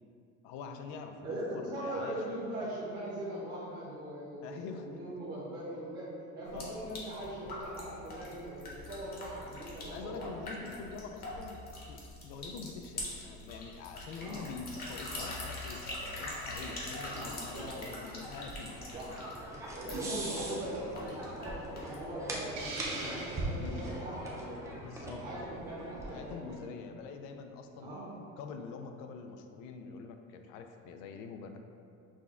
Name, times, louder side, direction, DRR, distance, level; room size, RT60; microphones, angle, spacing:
voice 1, 0.4-2.2 4.4-5.2 6.5-6.8 7.2-7.3 9.9-11.6 11.9-15.8 16.1-18.8 23.6-23.9 24.8-25.2 26.1-27.9 28.4-31.6, left 5 dB, 85° left, 6 dB, 0.5 m, -45 dB
voice 2, 1.2-6.1 6.3-10.3 14.2-14.5 17.0-17.9 18.9-19.1 19.7-24.6 25.1-26.5 27.8-28.1, right 1 dB, 35° right, -8 dB, 0.8 m, -40 dB
sound 1, 6.4-22.1, left 1 dB, 30° left, 0.8 m, -43 dB
sound 2, 18.0-26.6, right 1 dB, 10° right, 0.4 m, -42 dB
Hiss, 22.6-23.9, right 2 dB, 65° right, 1.3 m, -41 dB
6.1 x 2.2 x 3.6 m, 2.5 s
cardioid pair, 170°, 30 cm